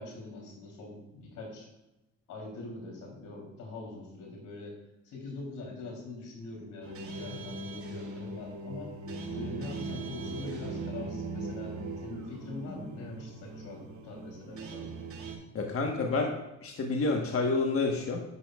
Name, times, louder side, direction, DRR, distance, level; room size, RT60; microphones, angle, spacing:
voice 1, 0.0-1.7 2.3-4.7 5.0-8.9 9.3-11.8 12.0-14.9, left 2 dB, 90° left, -1 dB, 3.4 m, -43 dB
sound 1, 6.8-15.3, right 3 dB, 70° right, 2.7 m, -40 dB
voice 2, 15.5-18.2, left 3 dB, 45° left, 1 dB, 1.3 m, -29 dB
11.0 x 8.7 x 2.4 m, 0.96 s
cardioid pair, 90°, 30 cm